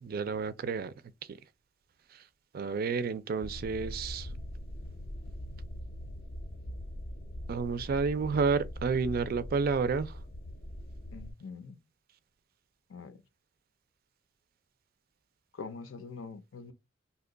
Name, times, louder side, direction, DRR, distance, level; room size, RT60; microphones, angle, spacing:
voice 1, 0.0-0.9 1.3-1.4 2.5-4.3 7.5-10.1, right 5 dB, 50° right, 0.3 m, -30 dB
sound 1, 3.4-11.3, equal, 40° left, 0.5 m, -42 dB
voice 2, 11.1-11.8 12.9-13.2 15.5-16.7, left 4 dB, 90° left, 0.6 m, -44 dB
2.8 x 2.2 x 3.7 m
head